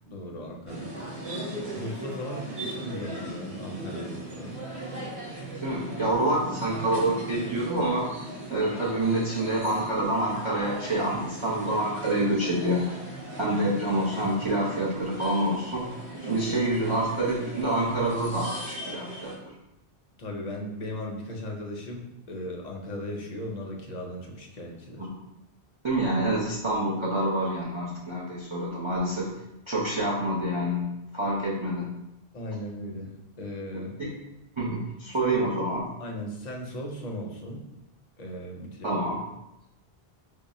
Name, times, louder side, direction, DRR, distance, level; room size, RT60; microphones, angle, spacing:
voice 1, 0.1-0.9 1.7-4.6 20.2-25.1 32.3-34.0 35.3-35.4 36.0-37.7 38.2-39.0, left 1 dB, 50° left, 0 dB, 0.6 m, -37 dB
sound 1, 0.7-19.4, right 1 dB, 85° right, 1.4 m, -38 dB
voice 2, 5.6-8.1 8.5-12.9 13.4-15.9 16.2-19.3 25.0-25.2 25.8-29.3 29.7-32.0 33.7-34.1 34.6-35.9 38.8-39.2, right 1 dB, 40° right, -6 dB, 0.5 m, -27 dB
3.6 x 2.0 x 4.0 m, 0.92 s
omnidirectional pair, 1.1 m